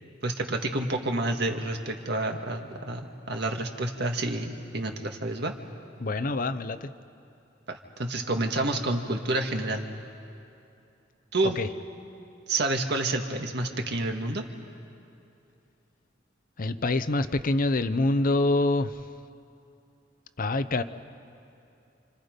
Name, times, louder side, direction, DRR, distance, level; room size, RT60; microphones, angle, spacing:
voice 1, 0.2-5.5 7.7-9.9 11.3-11.6 12.5-14.4, right 2 dB, 65° right, 4 dB, 1.8 m, -29 dB
voice 2, 6.0-6.9 11.6-11.7 16.6-18.9 20.4-20.8, left 2 dB, 50° left, 12 dB, 0.7 m, -25 dB
29.5 x 26.0 x 5.2 m, 2.6 s
head